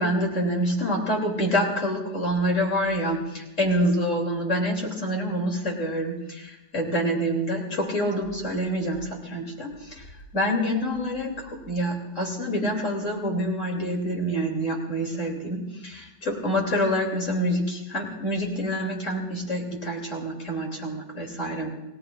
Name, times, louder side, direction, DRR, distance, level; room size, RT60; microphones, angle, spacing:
voice 1, 0.0-10.1 10.3-21.7, equal, 50° left, 0 dB, 3.3 m, -27 dB
29.0 x 18.0 x 2.5 m, 0.99 s
omnidirectional pair, 1.7 m